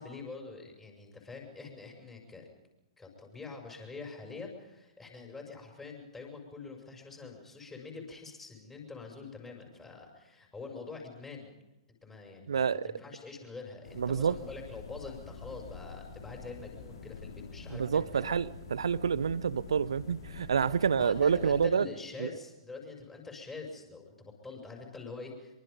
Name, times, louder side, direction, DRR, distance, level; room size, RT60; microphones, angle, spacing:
voice 1, 0.0-2.5 3.0-11.5 12.0-18.3 20.8-25.6, left 4 dB, 10° left, 1 dB, 6.2 m, -45 dB
voice 2, 12.5-12.8 14.0-14.4 17.7-21.9 22.2-22.3, right 6 dB, 65° right, 19 dB, 0.8 m, -28 dB
sound 1, 13.8-21.7, left 4 dB, 60° left, 4.7 m, -46 dB
24.5 x 24.0 x 5.4 m, 0.96 s
figure-of-eight pair, 115°, 3 cm